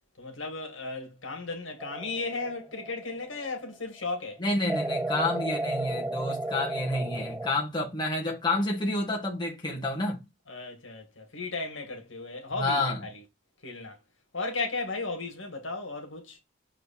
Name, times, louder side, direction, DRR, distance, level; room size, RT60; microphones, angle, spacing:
voice 1, 0.2-4.4 10.5-13.2 13.6-14.0 14.3-16.4, left 3 dB, 70° left, 2.2 m, -35 dB
sound 1, 1.8-3.6 4.7-7.5, right 1 dB, 10° right, 0.3 m, -33 dB
voice 2, 4.4-10.2 12.6-13.0, left 2 dB, 20° left, 1.6 m, -29 dB
6.3 x 4.9 x 4.3 m
head